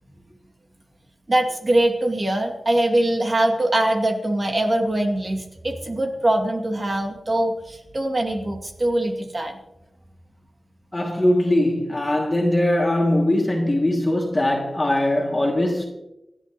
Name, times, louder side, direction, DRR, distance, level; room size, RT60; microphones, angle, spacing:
voice 1, 1.3-9.5, right 1 dB, 35° right, 2.6 m, -22 dB
voice 2, 10.9-15.9, left 1 dB, 20° left, 2.4 m, -21 dB
28.5 x 11.5 x 3.1 m
wide cardioid pair, 115°, 0 cm